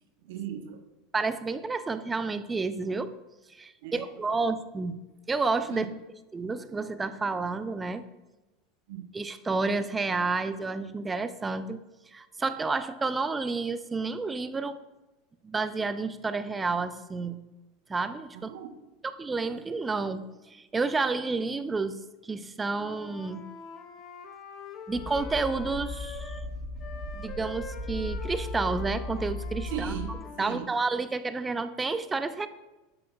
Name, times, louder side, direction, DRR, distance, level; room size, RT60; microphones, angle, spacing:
voice 1, 0.2-0.8 3.8-4.1 4.4-4.5 5.7-5.9 8.9-9.0 18.4-18.7 29.7-30.7, right 8 dB, 75° right, 7 dB, 0.6 m, -37 dB
voice 2, 1.1-3.1 3.5-5.0 5.3-5.8 6.3-8.0 9.1-11.8 12.1-14.8 15.4-17.4 17.9-18.5 19.2-23.4 24.9-26.4 27.1-29.9 30.4-32.5, right 3 dB, 15° right, 12 dB, 0.3 m, -30 dB
Wind instrument woodwind instrument, 22.8-26.5 26.8-30.6, left 5 dB, 35° left, 0.7 m, -44 dB
sound 1, 24.9-30.1, left 1 dB, 40° right, 2.0 m, -36 dB
7.5 x 5.7 x 2.3 m, 1.1 s
supercardioid pair, 135°, 0 cm